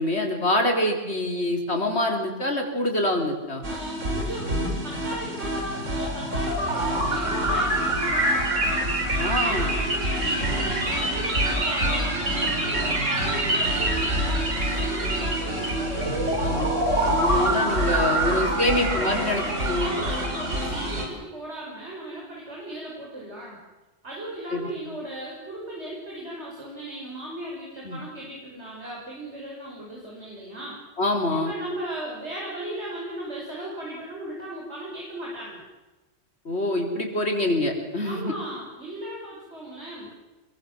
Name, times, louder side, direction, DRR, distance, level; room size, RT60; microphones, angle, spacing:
voice 1, 0.0-3.6 9.2-9.7 16.4-16.8 17.0-19.9 24.5-24.9 27.8-28.0 31.0-31.5 36.4-38.3, left 1 dB, 60° left, 2 dB, 4.7 m, -25 dB
sound 1, 3.6-21.1, right 1 dB, 90° right, 5.2 m, -25 dB
voice 2, 3.7-8.8 9.4-15.6 19.8-23.6 24.0-30.8 31.5-35.6 38.0-40.1, right 1 dB, 65° right, -3 dB, 6.2 m, -36 dB
27.5 x 23.0 x 7.6 m, 1.2 s
omnidirectional pair, 1.2 m